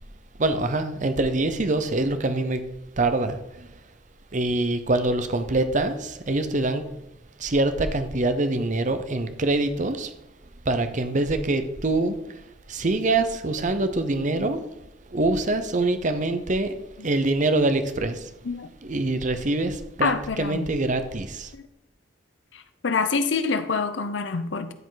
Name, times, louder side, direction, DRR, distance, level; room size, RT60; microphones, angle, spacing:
voice 1, 0.4-2.6 3.0-3.7 4.3-6.9 7.4-10.1 10.6-12.4 12.7-14.6 15.1-16.8 17.0-18.3 18.8-21.5, right 2 dB, 40° right, 9 dB, 0.8 m, -24 dB
voice 2, 13.7-14.6 18.4-18.7 20.0-20.7 21.5-21.6 22.5-24.7, left 4 dB, 70° left, 11 dB, 0.7 m, -27 dB
12.5 x 5.1 x 4.0 m, 0.86 s
head